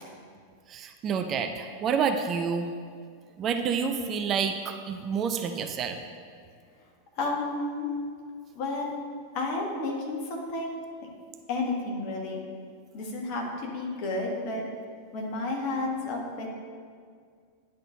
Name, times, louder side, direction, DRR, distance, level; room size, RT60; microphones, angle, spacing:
voice 1, 0.7-2.7 3.4-6.0, right 6 dB, 30° right, 6 dB, 0.5 m, -28 dB
voice 2, 7.2-7.9 8.5-8.9 9.3-10.7 11.5-12.4 12.9-14.7 15.1-16.5, left 2 dB, 45° left, -1 dB, 1.6 m, -31 dB
9.7 x 4.3 x 6.3 m, 2.1 s
figure-of-eight pair, 90°, 0 cm